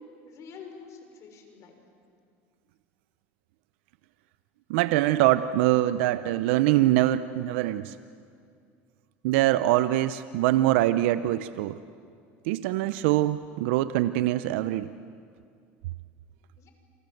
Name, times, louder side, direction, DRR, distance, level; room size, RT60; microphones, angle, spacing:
voice 1, 0.0-1.8 16.6-16.7, left 4 dB, 50° left, 5 dB, 6.0 m, -47 dB
voice 2, 4.7-8.0 9.2-11.8 12.5-14.9, right 14 dB, 80° right, 13 dB, 0.7 m, -24 dB
27.5 x 26.5 x 7.9 m, 2.3 s
supercardioid pair, 100°, 7 cm